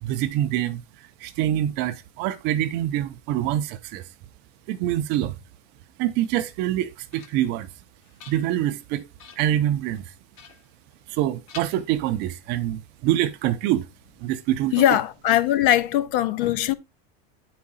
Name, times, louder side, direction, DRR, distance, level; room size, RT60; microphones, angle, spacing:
voice 1, 0.0-4.1 4.7-5.4 6.0-7.7 8.3-9.1 9.4-10.0 11.1-13.9 14.2-14.7, right 12 dB, 35° right, 0.5 m, -25 dB
sound 1, 6.6-7.6 8.0-8.8 9.2-9.6 10.3-11.2 11.5-12.4, left 6 dB, 40° left, 1.2 m, -47 dB
voice 2, 14.7-16.7, left 12 dB, 60° left, 0.8 m, -20 dB
9.5 x 4.9 x 4.0 m
supercardioid pair, 175°, 31 cm